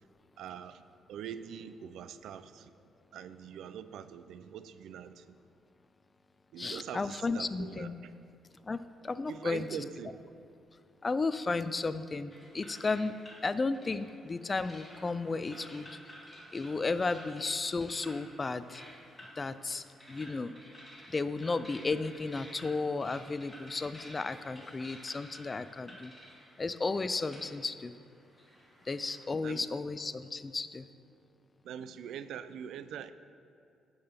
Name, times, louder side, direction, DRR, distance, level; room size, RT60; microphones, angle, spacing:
voice 1, 0.4-0.8 1.1-2.7 3.1-5.4 6.5-8.1 9.3-10.2 29.4-29.7 31.6-33.1, right 8 dB, 80° right, 13 dB, 0.3 m, -43 dB
voice 2, 6.6-7.9 8.6-9.8 11.0-13.1 13.4-16.0 16.5-18.8 19.4-20.5 21.1-26.1 26.6-27.9 28.9-30.9, left 3 dB, 30° left, 13 dB, 0.3 m, -34 dB
sound 1, 12.3-29.3, equal, 10° left, 1.8 m, -53 dB
9.7 x 5.6 x 4.4 m, 2.5 s
cardioid pair, 90°, 0 cm